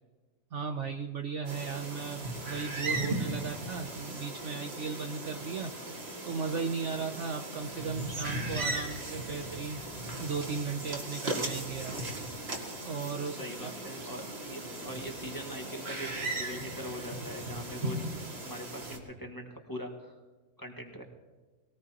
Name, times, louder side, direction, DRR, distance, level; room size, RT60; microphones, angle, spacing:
voice 1, 0.5-5.8 6.2-9.8 10.2-11.9 12.8-13.7, right 5 dB, 60° right, 5 dB, 0.9 m, -36 dB
sound 1, 1.4-19.0, right 2 dB, 40° right, 2.1 m, -37 dB
voice 2, 13.3-18.0 18.4-20.2 20.6-21.0, equal, 15° left, 1 dB, 1.7 m, -42 dB
21.5 x 18.0 x 2.9 m, 1.3 s
omnidirectional pair, 1.7 m